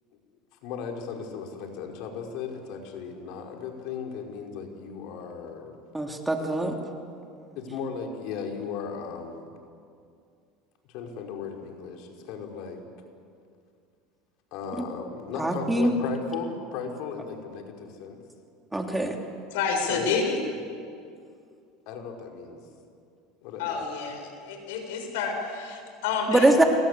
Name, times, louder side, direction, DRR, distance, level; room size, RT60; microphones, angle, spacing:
voice 1, 0.6-6.0 7.6-9.5 10.9-12.8 14.5-18.2 19.9-20.2 21.9-22.6 23.4-23.8, left 6 dB, 65° left, 2 dB, 4.9 m, -36 dB
voice 2, 5.9-6.7 15.4-15.9 18.7-19.2 26.3-26.6, right 1 dB, 10° right, 2 dB, 3.1 m, -23 dB
voice 3, 19.5-20.4 23.6-26.7, left 5 dB, 80° left, 4 dB, 6.6 m, -29 dB
28.5 x 23.0 x 8.3 m, 2.4 s
supercardioid pair, 115°, 0 cm